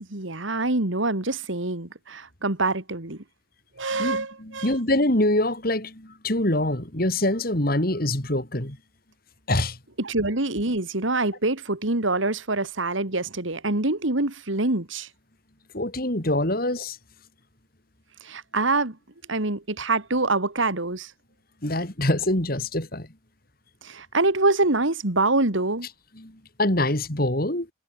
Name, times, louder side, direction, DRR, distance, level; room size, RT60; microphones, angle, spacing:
voice 1, 0.1-3.2 3.8-4.7 10.0-15.1 18.2-19.0 19.3-21.1 23.8-25.9, right 2 dB, 75° right, 2.4 m, -25 dB
voice 2, 3.9-8.8 9.5-9.8 15.7-17.0 21.6-23.1 26.1-26.3 26.6-27.7, left 1 dB, 45° left, 3.4 m, -24 dB
head